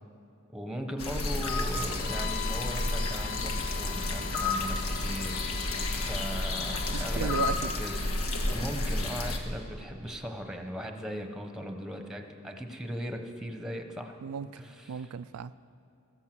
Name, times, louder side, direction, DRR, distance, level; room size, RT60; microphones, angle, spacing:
voice 1, 0.5-8.0 8.5-14.1 14.5-15.1, equal, 5° right, 4 dB, 1.1 m, -38 dB
sound 1, 1.0-9.4, left 2 dB, 75° left, 1.6 m, -31 dB
Bowed string instrument, 1.9-7.6, left 11 dB, 40° left, 0.3 m, -41 dB
voice 2, 6.9-7.7 14.2-14.6 14.9-15.7, right 6 dB, 85° right, 12 dB, 0.4 m, -35 dB
15.5 x 14.5 x 6.1 m, 2.7 s
head